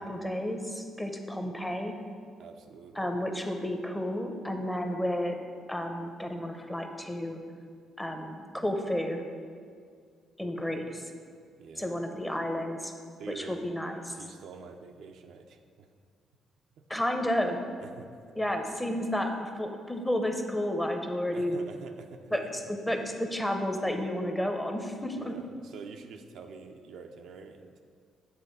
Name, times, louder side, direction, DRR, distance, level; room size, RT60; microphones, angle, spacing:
voice 1, 0.0-1.9 2.9-5.4 5.7-7.4 8.0-9.2 10.4-11.0 11.8-12.9 13.4-14.1 16.9-17.6 18.4-21.5 22.3-22.4 22.7-25.3, left 1 dB, 10° left, 4 dB, 0.8 m, -31 dB
voice 2, 2.4-3.1 10.7-10.9 11.6-12.3 13.2-13.6 14.1-15.9 17.8-18.4 21.3-22.5 25.2-27.8, right 5 dB, 75° right, 4 dB, 0.5 m, -47 dB
8.3 x 3.8 x 6.6 m, 2.1 s
cardioid pair, 90°, 0 cm